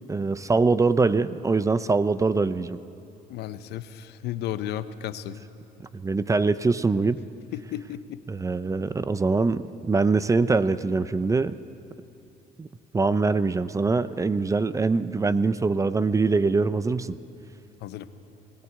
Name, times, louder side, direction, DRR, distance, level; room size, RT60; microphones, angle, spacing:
voice 1, 0.0-2.8 5.8-7.2 8.3-11.5 12.6-12.7 12.9-17.2, right 4 dB, 20° right, 14 dB, 0.5 m, -23 dB
voice 2, 3.3-5.4 7.5-8.2 17.8-18.1, left 11 dB, 80° left, 12 dB, 0.9 m, -34 dB
20.5 x 16.5 x 8.1 m, 2.6 s
cardioid pair, 110°, 17 cm